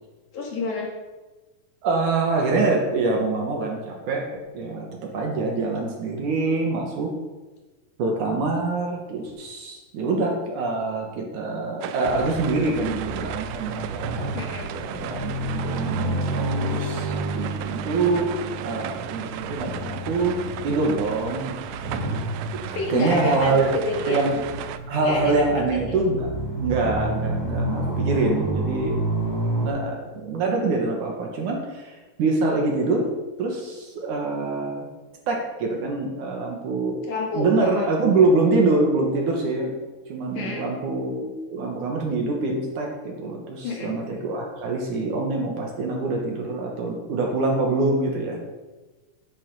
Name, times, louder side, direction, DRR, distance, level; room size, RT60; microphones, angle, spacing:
voice 1, 0.3-0.9 14.3-14.7 22.7-23.6 23.9-24.2 25.0-25.5 25.9-26.0 37.1-37.9 40.3-40.7 43.6-43.9, left 3 dB, 60° left, 0 dB, 3.0 m, -29 dB
voice 2, 1.8-4.3 4.5-4.9 5.1-7.1 8.0-14.4 14.7-18.3 18.6-22.1 22.9-23.7 24.1-24.4 24.9-26.3 26.6-29.0 29.6-33.1 33.4-34.9 35.3-39.7 40.1-48.4, right 3 dB, 60° right, 0 dB, 2.8 m, -25 dB
sound 1, 11.8-24.8, right 11 dB, 80° right, 2.2 m, -36 dB
sound 2, 12.0-29.7, right 1 dB, 35° right, 2.6 m, -30 dB
11.0 x 8.1 x 5.5 m, 1.2 s
omnidirectional pair, 4.3 m